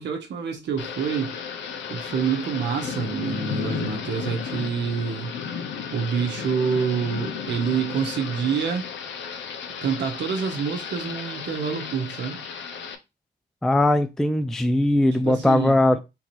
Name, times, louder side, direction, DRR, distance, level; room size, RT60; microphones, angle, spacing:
voice 1, 0.0-1.4 1.9-5.3 5.9-8.9 9.8-12.4 15.1-15.8, right 6 dB, 65° right, 1.0 m, -27 dB
Thunder / Rain, 0.8-13.0, left 7 dB, 70° left, 0.8 m, -34 dB
voice 2, 13.6-16.0, left 1 dB, ahead, 0.4 m, -20 dB
3.7 x 2.8 x 4.5 m
cardioid pair, 90°, 20 cm